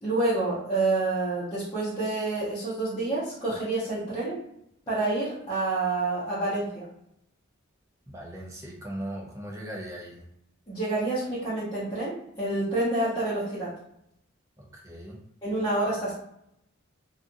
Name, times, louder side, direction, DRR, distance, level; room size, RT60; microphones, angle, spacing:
voice 1, 0.0-4.4 4.9-6.8 10.7-13.7 15.4-16.1, right 2 dB, 20° left, -11 dB, 0.8 m, -28 dB
voice 2, 8.1-10.2 14.6-15.2, right 1 dB, 15° right, -2 dB, 0.5 m, -39 dB
2.6 x 2.4 x 2.5 m, 0.78 s
head